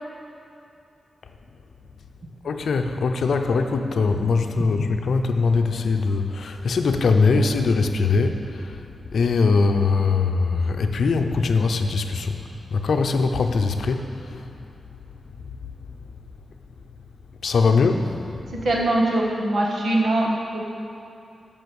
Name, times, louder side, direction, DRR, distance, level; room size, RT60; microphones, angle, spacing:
voice 1, 2.4-8.8 9.1-12.4 12.7-14.5 17.4-18.2, left 4 dB, 70° left, 5 dB, 0.7 m, -21 dB
voice 2, 18.6-20.6, right 1 dB, 60° right, -2 dB, 1.7 m, -22 dB
12.5 x 5.5 x 7.1 m, 2.6 s
wide cardioid pair, 140°, 0 cm